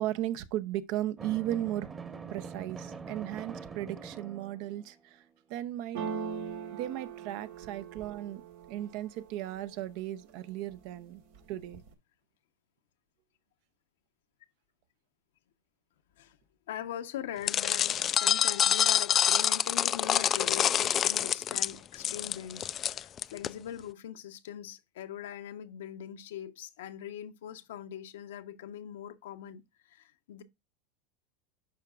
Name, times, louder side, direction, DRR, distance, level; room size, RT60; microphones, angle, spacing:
voice 1, 0.0-1.9 2.3-5.2 5.5-6.0 6.7-8.4 8.7-11.2 11.5-11.8, right 13 dB, 60° right, 0.7 m, -36 dB
Drum, 1.2-5.0, right 5 dB, 20° right, 1.1 m, -44 dB
sound 1, 5.9-9.8 10.3-10.9 11.2-11.9, right 6 dB, 80° right, 1.5 m, -41 dB
voice 2, 16.7-30.4, left 10 dB, 85° left, 0.9 m, -42 dB
sound 2, 17.5-23.5, left 9 dB, 35° left, 0.3 m, -27 dB
11.5 x 4.8 x 2.4 m
supercardioid pair, 115°, 0 cm